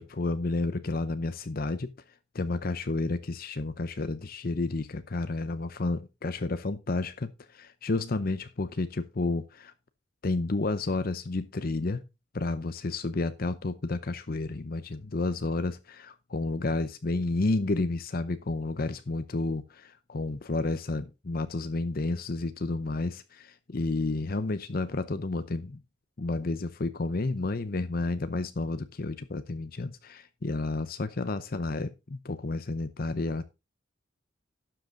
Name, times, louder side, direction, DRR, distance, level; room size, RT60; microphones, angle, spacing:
voice 1, 0.0-1.9 2.3-9.7 10.2-12.0 12.3-25.8 26.2-33.4, left 2 dB, 50° left, 0.7 m, -31 dB
12.0 x 7.7 x 3.8 m
head